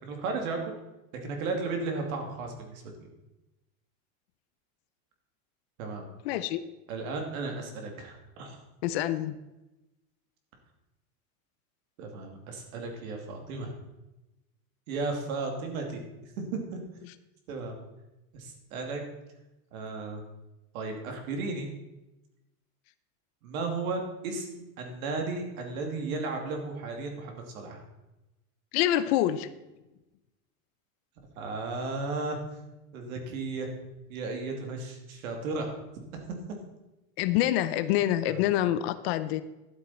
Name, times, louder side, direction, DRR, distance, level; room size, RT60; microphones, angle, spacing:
voice 1, 0.0-0.7 1.2-2.8 5.8-6.0 6.9-8.6 12.0-13.7 14.9-16.0 16.4-16.8 17.5-17.7 18.3-19.0 19.7-20.2 20.7-21.7 23.4-27.8 31.4-32.4 32.9-33.7 34.1-35.7 38.2-38.4, right 3 dB, 70° right, 3 dB, 2.8 m, -34 dB
voice 2, 6.2-6.6 8.8-9.4 28.7-29.5 37.2-39.4, left 13 dB, 45° left, 13 dB, 0.6 m, -26 dB
12.0 x 8.5 x 4.3 m, 0.99 s
supercardioid pair, 160°, 43 cm